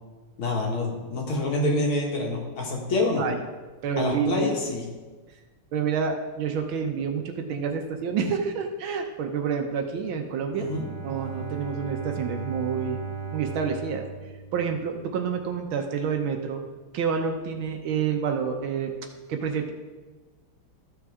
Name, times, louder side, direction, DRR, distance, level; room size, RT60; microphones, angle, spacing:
voice 1, 0.4-3.3 4.0-4.8 10.5-10.8, left 2 dB, 70° left, -2 dB, 2.5 m, -26 dB
voice 2, 3.8-4.5 5.7-10.7 11.0-13.0 13.3-14.0 14.5-16.6 16.9-18.9 19.3-19.7, right 6 dB, 70° right, 4 dB, 1.5 m, -28 dB
Bowed string instrument, 10.5-15.3, right 5 dB, 25° right, 2.2 m, -37 dB
13.5 x 6.3 x 3.6 m, 1.3 s
omnidirectional pair, 2.4 m